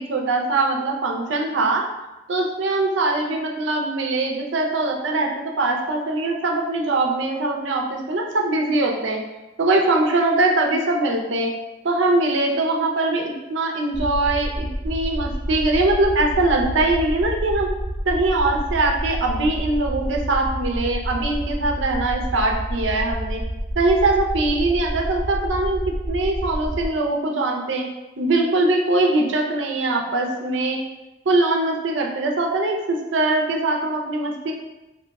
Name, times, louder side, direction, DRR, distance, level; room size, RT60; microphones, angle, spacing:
voice 1, 0.0-1.8 2.3-9.2 9.6-11.5 11.8-17.7 18.0-23.4 23.8-25.8 26.1-27.9 28.2-30.8 31.3-34.5, right 2 dB, 70° right, 1 dB, 0.5 m, -22 dB
sound 1, 13.9-26.9, right 1 dB, 10° right, 0.8 m, -28 dB
3.0 x 2.2 x 4.0 m, 1.0 s
head